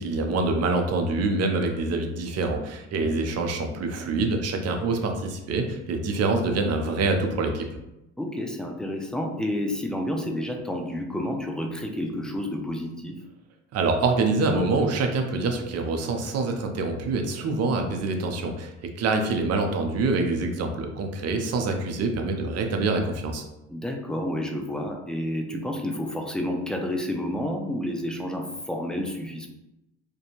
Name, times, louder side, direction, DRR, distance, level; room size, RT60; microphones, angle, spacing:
voice 1, 0.0-7.6 13.7-18.7 19.0-23.4, right 3 dB, 45° right, 4 dB, 0.6 m, -25 dB
voice 2, 8.2-13.2 23.7-29.5, left 1 dB, ahead, 2 dB, 0.4 m, -30 dB
2.5 x 2.2 x 2.9 m, 0.92 s
supercardioid pair, 70°, 34 cm